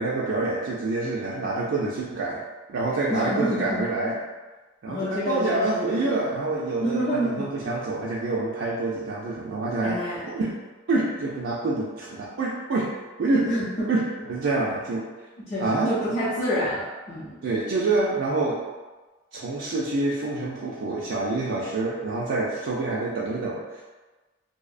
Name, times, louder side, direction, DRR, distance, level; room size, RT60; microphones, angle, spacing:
voice 1, 0.0-2.4 2.7-4.2 4.8-10.0 10.3-10.6 10.9-12.9 13.2-13.5 13.9-14.0 14.3-15.1 15.6-15.9 17.4-18.6 19.3-23.8, right 3 dB, 65° right, -6 dB, 0.3 m, -27 dB
voice 2, 3.1-3.8 4.9-6.1 6.8-7.5 9.8-10.2 13.4-13.9 15.4-17.4, equal, 30° left, -13 dB, 0.6 m, -28 dB
2.6 x 2.0 x 2.4 m, 1.2 s
head